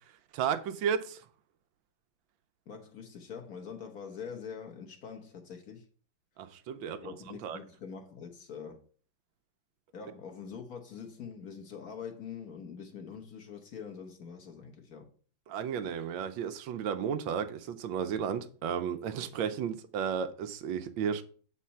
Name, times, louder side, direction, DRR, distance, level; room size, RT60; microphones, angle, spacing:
voice 1, 0.3-1.2 6.4-7.6 15.5-21.2, right 7 dB, 80° right, 1.4 m, -33 dB
voice 2, 2.7-5.8 7.0-8.8 9.9-15.1, left 6 dB, 55° left, 1.4 m, -44 dB
7.5 x 4.1 x 5.6 m
omnidirectional pair, 2.1 m